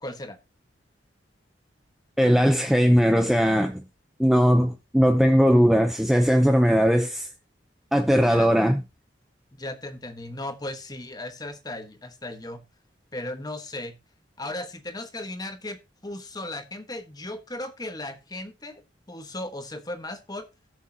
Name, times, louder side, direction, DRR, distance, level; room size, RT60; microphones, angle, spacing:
voice 1, 0.0-0.4 8.1-8.5 9.5-12.6 13.1-14.0 14.4-20.5, left 1 dB, 20° left, 1.3 m, -36 dB
voice 2, 2.2-3.8 4.2-7.3 7.9-8.8, equal, ahead, 0.6 m, -19 dB
18.5 x 6.6 x 2.8 m
head